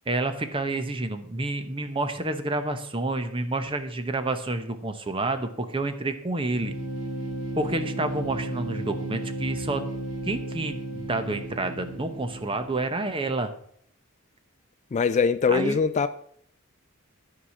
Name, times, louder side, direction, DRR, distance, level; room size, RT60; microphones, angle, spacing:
voice 1, 0.1-6.8 7.6-9.8 10.3-13.5 15.5-15.8, right 2 dB, 25° right, 8 dB, 0.9 m, -29 dB
sound 1, 6.5-13.2, right 1 dB, 65° right, 2.6 m, -34 dB
voice 2, 14.9-16.1, left 5 dB, 35° left, 12 dB, 0.3 m, -22 dB
10.0 x 4.8 x 7.0 m, 0.64 s
head